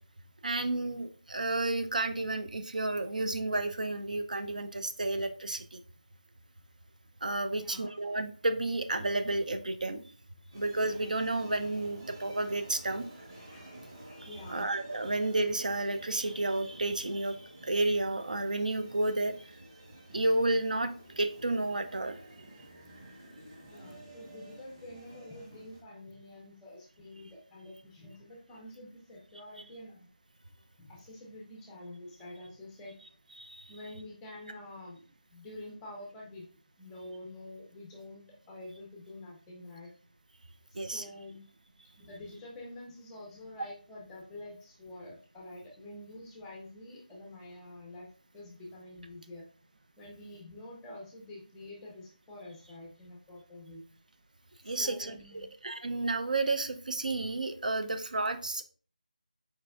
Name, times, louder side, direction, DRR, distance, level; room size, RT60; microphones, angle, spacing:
voice 1, 0.4-5.8 7.2-10.0 10.5-13.1 14.5-17.4 17.6-19.5 20.1-22.2 33.4-33.6 40.7-41.0 54.6-58.6, right 2 dB, 60° right, 9 dB, 0.6 m, -31 dB
voice 2, 7.6-7.9 14.3-14.7 23.7-30.1 30.8-32.9 33.7-35.0 35.3-36.5 36.8-39.9 40.7-41.5 42.0-49.5 50.0-53.8 54.6-55.5, left 1 dB, 5° left, -2 dB, 0.5 m, -47 dB
sound 1, 10.5-25.8, right 1 dB, 25° right, 1.1 m, -51 dB
4.6 x 4.4 x 2.4 m, 0.41 s
figure-of-eight pair, 170°, 5 cm